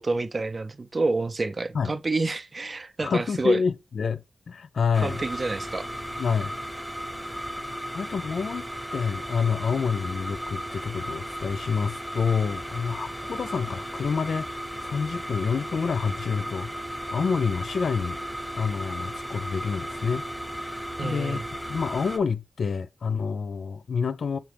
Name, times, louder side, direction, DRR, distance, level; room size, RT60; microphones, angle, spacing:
voice 1, 0.0-3.6 5.0-5.9 21.0-21.5, right 3 dB, 40° right, 0.4 m, -28 dB
voice 2, 3.0-5.2 6.2-6.5 7.9-14.5 14.8-16.7 17.1-18.2 18.5-24.4, left 5 dB, 70° left, 0.4 m, -28 dB
sound 1, 4.9-22.2, equal, ahead, 0.7 m, -35 dB
5.8 x 2.5 x 3.3 m
cardioid pair, 75°, 0 cm